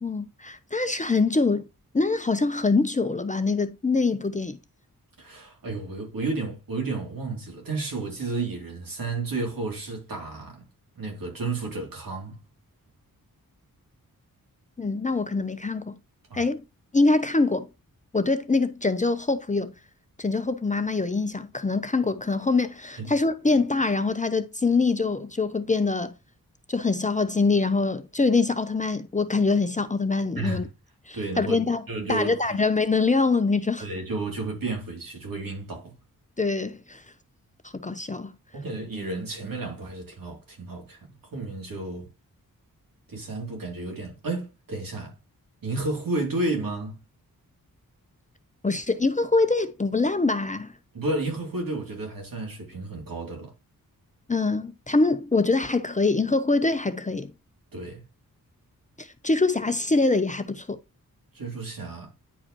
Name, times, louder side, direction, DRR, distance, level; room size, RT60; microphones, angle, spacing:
voice 1, 0.0-1.6 1.9-4.6 14.8-16.0 16.3-16.6 16.9-17.7 18.1-19.7 20.2-26.1 26.7-30.6 31.1-31.8 32.1-33.9 36.4-37.0 37.7-38.3 48.6-50.7 54.3-57.3 59.0-60.8, left 3 dB, 20° left, 0.7 m, -24 dB
voice 2, 5.2-10.7 11.0-12.4 16.3-16.5 23.0-23.1 30.3-30.7 31.1-31.6 31.9-32.6 33.8-35.9 38.5-42.1 43.1-45.1 45.6-47.0 50.9-53.5 57.7-58.0 61.3-62.1, right 3 dB, 70° right, 3.0 m, -32 dB
9.9 x 4.8 x 3.0 m
cardioid pair, 55°, 36 cm